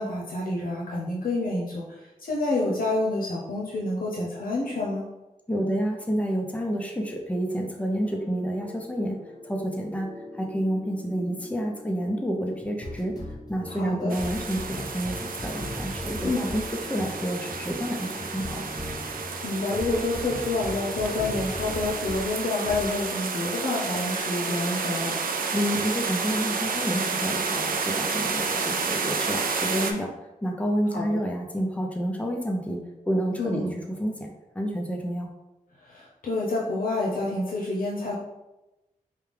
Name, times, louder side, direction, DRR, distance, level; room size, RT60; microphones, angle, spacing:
voice 1, 0.0-5.0 13.7-14.1 16.2-16.5 19.4-25.2 30.9-31.0 33.4-33.8 35.8-38.1, left 2 dB, 90° left, -4 dB, 0.7 m, -28 dB
voice 2, 5.5-10.1 10.3-13.1 13.5-16.6 16.9-18.6 25.5-30.1 30.4-33.6 34.0-35.3, equal, 10° left, 1 dB, 0.7 m, -29 dB
sound 1, 8.0-22.3 22.6-22.9, left 1 dB, 25° left, 1.3 m, -39 dB
sound 2, 14.1-29.9, right 4 dB, 90° right, 0.4 m, -31 dB
4.9 x 2.3 x 3.4 m, 0.98 s
wide cardioid pair, 65°, 14 cm